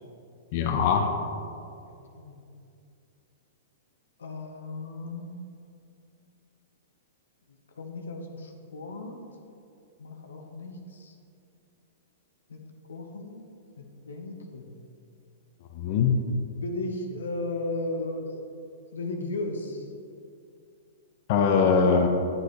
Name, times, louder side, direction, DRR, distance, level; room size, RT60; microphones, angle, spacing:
voice 1, 0.5-1.1 15.7-16.1 21.3-22.1, left 6 dB, 50° left, 3 dB, 0.8 m, -22 dB
voice 2, 4.2-5.4 7.7-9.2 10.0-11.1 12.5-13.5 13.8-14.8 16.6-18.4 18.9-19.9, left 2 dB, 90° left, 3 dB, 1.0 m, -35 dB
8.9 x 8.0 x 3.3 m, 2.5 s
hypercardioid pair, 135°, 0 cm